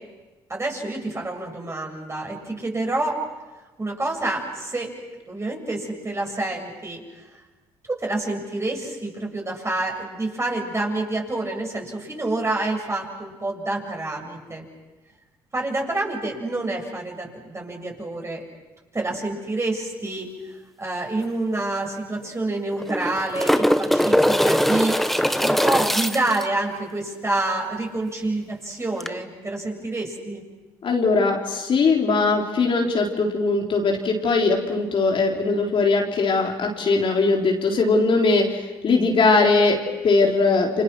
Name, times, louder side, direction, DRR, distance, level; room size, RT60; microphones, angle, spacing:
voice 1, 0.5-3.2 3.8-4.9 5.3-7.0 7.9-14.6 15.5-18.4 18.9-20.3 20.8-25.0 25.4-30.4, right 2 dB, 25° right, 1 dB, 7.7 m, -27 dB
sound 1, 21.2-21.3 21.6-21.7 22.7-26.4 29.0-29.1, equal, ahead, 1.3 m, -21 dB
voice 2, 30.8-40.8, left 3 dB, 55° left, 0 dB, 4.2 m, -20 dB
30.0 x 26.5 x 6.4 m, 1.2 s
hypercardioid pair, 55°, 11 cm